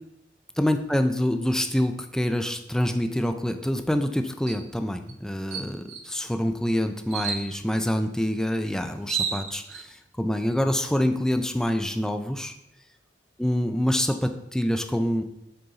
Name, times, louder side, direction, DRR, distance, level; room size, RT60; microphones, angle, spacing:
voice 1, 0.6-12.5 13.4-15.2, left 1 dB, 5° left, 7 dB, 0.3 m, -26 dB
sound 1, 4.5-4.7 5.1-5.2 5.5-6.1 7.1-7.5 8.6-8.7 8.9-9.8, right 7 dB, 75° right, 0.8 m, -31 dB
6.7 x 3.9 x 3.9 m, 0.85 s
head